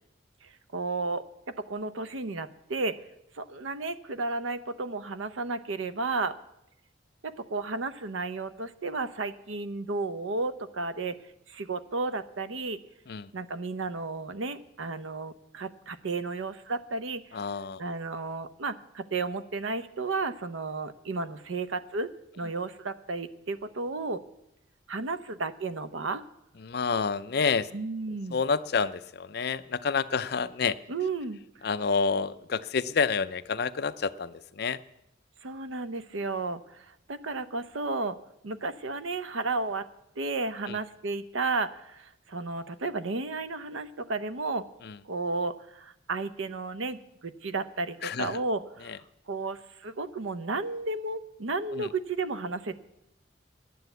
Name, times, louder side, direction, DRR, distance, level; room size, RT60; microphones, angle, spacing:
voice 1, 0.4-1.2 1.6-3.0 3.3-6.3 7.2-11.2 11.5-12.8 13.3-17.4 17.8-22.1 22.4-24.2 24.9-26.2 27.7-28.4 30.9-31.4 35.4-38.2 38.4-39.9 40.2-44.6 45.0-52.8, right 3 dB, 90° right, 13 dB, 0.7 m, -33 dB
voice 2, 17.3-17.8 26.6-27.7 28.3-30.8 31.6-34.8 40.7-40.8 44.8-45.0 48.0-48.4 48.9-49.0 51.7-51.9, left 5 dB, 55° left, 13 dB, 0.5 m, -29 dB
10.5 x 9.4 x 8.0 m, 0.84 s
head